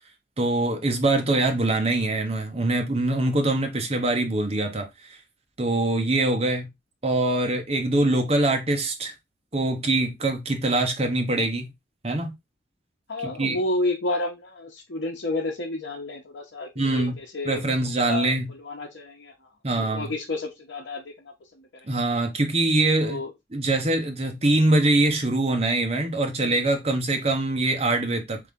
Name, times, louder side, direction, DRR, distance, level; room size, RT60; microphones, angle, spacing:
voice 1, 0.4-4.9 5.6-6.7 7.0-9.1 9.5-11.7 12.0-12.3 13.2-13.6 16.8-17.2 17.4-18.5 19.6-20.1 21.9-23.2 23.5-28.4, right 2 dB, 35° right, 1.0 m, -23 dB
voice 2, 13.1-17.6 17.9-19.3 19.8-21.1 22.9-23.3, left 2 dB, 85° left, 0.8 m, -30 dB
3.9 x 3.4 x 3.5 m
head